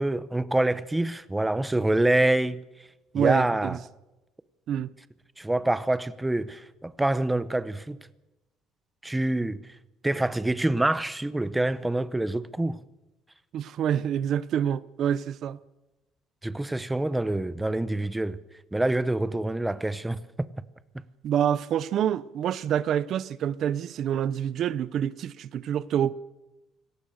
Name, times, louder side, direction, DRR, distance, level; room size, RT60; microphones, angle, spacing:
voice 1, 0.0-2.6 3.1-3.8 5.4-8.0 9.0-9.6 10.0-12.8 16.4-18.4 18.7-20.5, right 1 dB, 10° right, 0.8 m, -26 dB
voice 2, 3.1-3.8 4.7-4.9 13.5-15.6 21.2-26.1, right 9 dB, 55° right, 0.8 m, -27 dB
26.0 x 18.5 x 6.6 m
cardioid pair, 135°, 0 cm